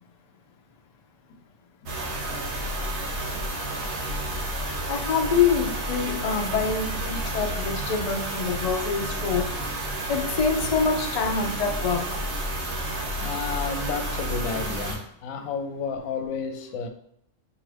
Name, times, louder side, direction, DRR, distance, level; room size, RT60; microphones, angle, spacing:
sound 1, 1.9-15.0, right 1 dB, 60° right, 1.1 m, -30 dB
voice 1, 4.9-9.5 10.1-12.1, left 5 dB, 50° left, 0.5 m, -25 dB
voice 2, 13.2-16.9, left 5 dB, 85° left, 1.0 m, -31 dB
5.5 x 2.5 x 3.3 m
omnidirectional pair, 1.4 m